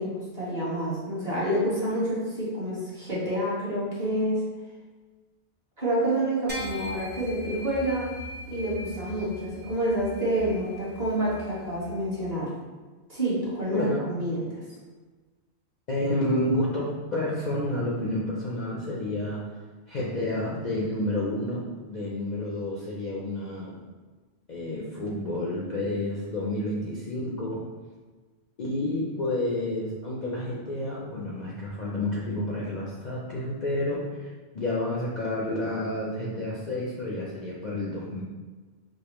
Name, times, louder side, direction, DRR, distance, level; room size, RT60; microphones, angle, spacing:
voice 1, 0.0-4.4 5.8-8.1 8.5-12.5 13.1-14.5, right 1 dB, 35° right, -8 dB, 1.2 m, -28 dB
sound 1, 6.5-12.1, left 2 dB, 15° right, 0.3 m, -41 dB
voice 2, 13.7-14.1 15.9-19.5 19.9-23.8 24.5-27.6 28.6-38.2, left 1 dB, 50° left, -5 dB, 0.6 m, -30 dB
5.2 x 2.0 x 2.9 m, 1.3 s
omnidirectional pair, 1.2 m